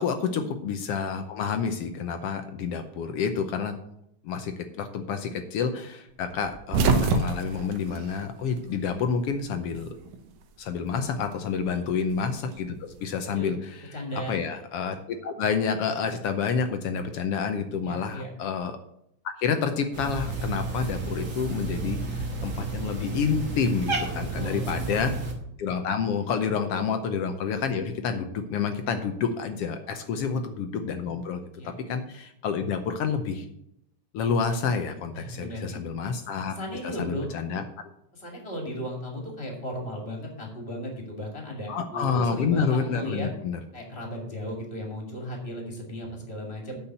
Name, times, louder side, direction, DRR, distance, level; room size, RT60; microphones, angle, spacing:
voice 1, 0.0-3.7 4.2-9.9 10.6-13.8 14.3-18.7 19.2-25.1 25.6-33.5 34.1-36.5 36.8-37.6 41.7-43.6, left 6 dB, 70° left, 7 dB, 1.5 m, -29 dB
sound 1, 6.4-9.0 9.2-10.3 11.5-13.0, right 4 dB, 75° right, 2.3 m, -27 dB
voice 2, 13.9-14.3 17.8-18.3 24.4-25.1 26.7-26.9 30.0-30.4 31.6-31.7 35.1-35.8 36.1-36.2 36.5-37.4 38.1-43.3 43.7-46.8, equal, 20° left, 1 dB, 2.6 m, -36 dB
Cat, 19.9-25.3, right 3 dB, 35° right, 1.5 m, -31 dB
8.5 x 5.6 x 8.0 m, 0.74 s
omnidirectional pair, 3.3 m